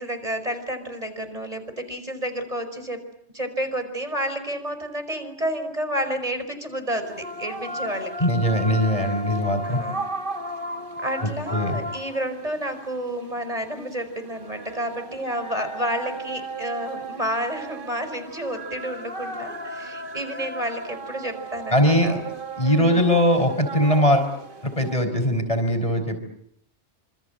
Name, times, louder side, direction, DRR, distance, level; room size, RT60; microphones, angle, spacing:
voice 1, 0.0-3.0 3.3-8.3 9.6-10.1 11.0-22.2 22.8-23.1, right 1 dB, 30° right, 9 dB, 5.3 m, -30 dB
sound 1, 7.0-24.9, right 1 dB, 45° right, 2.1 m, -35 dB
voice 2, 8.2-9.8 11.2-11.8 21.7-22.2 22.6-24.3 24.6-26.2, equal, 30° left, 8 dB, 4.8 m, -21 dB
27.5 x 27.0 x 7.9 m, 0.70 s
omnidirectional pair, 1.2 m